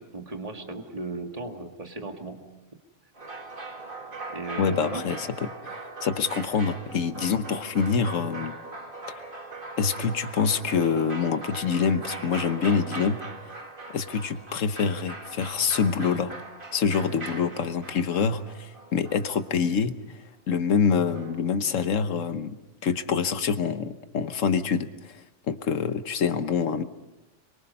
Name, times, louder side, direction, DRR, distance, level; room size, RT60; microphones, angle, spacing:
voice 1, 0.0-2.4 4.3-5.0, right 3 dB, 30° right, 4 dB, 2.0 m, -36 dB
sound 1, 3.2-19.8 21.1-21.4, right 2 dB, 45° right, 2.3 m, -40 dB
voice 2, 4.6-8.6 9.1-9.2 9.8-13.2 13.9-16.3 16.7-22.5 22.8-26.8, left 6 dB, 85° left, 11 dB, 1.4 m, -26 dB
26.5 x 23.5 x 5.5 m, 1.0 s
omnidirectional pair, 1.3 m